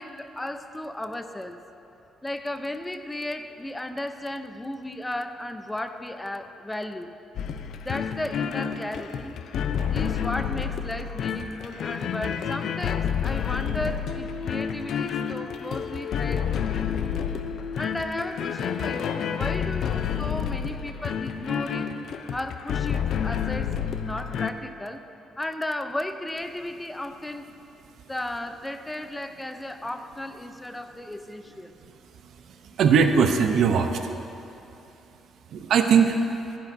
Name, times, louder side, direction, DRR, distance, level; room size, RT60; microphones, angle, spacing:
voice 1, 0.0-1.6 2.2-7.1 7.8-9.3 9.9-17.0 17.8-21.9 22.3-25.0 25.4-27.5 28.1-31.8, left 1 dB, 10° left, 8 dB, 0.6 m, -35 dB
sound 1, 7.4-24.5, left 8 dB, 70° left, 0.5 m, -29 dB
voice 2, 32.6-34.0 35.5-36.2, right 6 dB, 70° right, 6 dB, 0.7 m, -20 dB
19.5 x 10.0 x 2.7 m, 2.9 s
cardioid pair, 90°, 0 cm